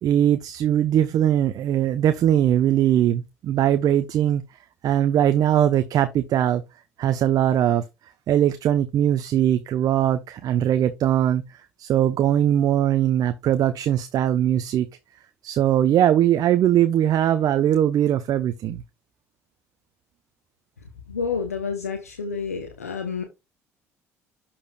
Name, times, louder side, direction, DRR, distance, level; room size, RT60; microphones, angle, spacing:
voice 1, 0.0-4.4 4.8-6.6 7.0-7.8 8.3-11.4 11.8-14.9 15.4-18.8, right 11 dB, 50° right, 0.6 m, -20 dB
voice 2, 21.1-23.2, left 5 dB, 90° left, 0.8 m, -29 dB
11.5 x 4.3 x 2.2 m
figure-of-eight pair, 55°, 8 cm